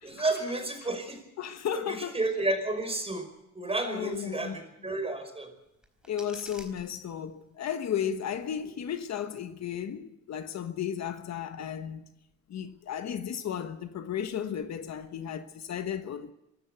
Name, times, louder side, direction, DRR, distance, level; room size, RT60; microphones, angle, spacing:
voice 1, 0.0-1.2 1.7-3.3 3.5-5.5, right 2 dB, 20° right, 5.4 m, -31 dB
voice 2, 1.4-2.2 3.8-4.6 6.1-12.1 12.5-16.3, left 9 dB, 60° left, 1.3 m, -34 dB
sound 1, 5.6-7.6, equal, 5° right, 4.3 m, -52 dB
23.5 x 13.5 x 8.1 m
cardioid pair, 90°, 30 cm